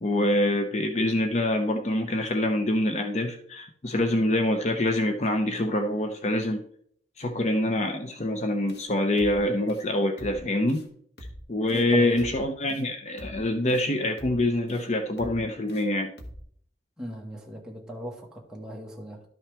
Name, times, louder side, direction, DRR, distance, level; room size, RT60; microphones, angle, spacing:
voice 1, 0.0-6.6 7.2-10.8 11.5-16.1, left 1 dB, 40° left, 0.7 m, -25 dB
sound 1, 8.7-8.9 9.2-9.4 9.7-9.9 10.2-10.4 10.7-10.9 11.2-11.4 11.7-11.9 12.2-12.4 12.7-12.8 13.2-13.4 13.7-13.9 14.2-14.4 14.7-14.9 15.2-15.4 15.7-15.9 16.2-16.4, equal, 65° left, 1.3 m, -43 dB
voice 2, 11.7-12.2 17.0-19.2, equal, 5° right, 1.6 m, -38 dB
12.0 x 5.8 x 3.4 m
head